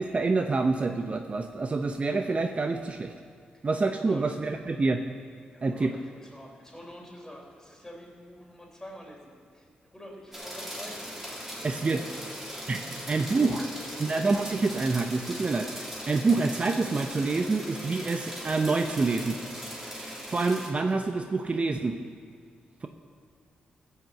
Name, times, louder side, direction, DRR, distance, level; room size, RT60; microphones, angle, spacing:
voice 1, 0.0-3.1 3.6-5.0 5.6-5.9 11.6-12.0 12.7-13.7 14.0-19.6 20.0-22.0 22.8-22.9, right 3 dB, 40° right, 6 dB, 0.7 m, -27 dB
voice 2, 4.0-4.4 5.5-12.3 12.6-13.9, equal, 10° left, -1 dB, 4.0 m, -47 dB
sound 1, 10.3-20.7, equal, 10° right, 3.0 m, -39 dB
15.0 x 6.6 x 7.7 m, 2.2 s
cardioid pair, 60°, 3 cm